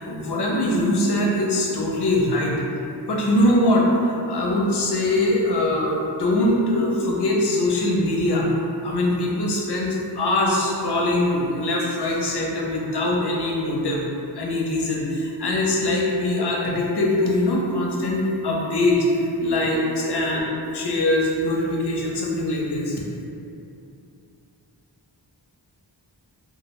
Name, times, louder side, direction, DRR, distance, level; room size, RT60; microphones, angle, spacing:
voice 1, 0.0-2.6 3.1-8.5 8.8-14.0 14.3-23.0, left 1 dB, 65° left, -2 dB, 0.6 m, -22 dB
2.3 x 2.1 x 2.9 m, 2.6 s
wide cardioid pair, 45°, 44 cm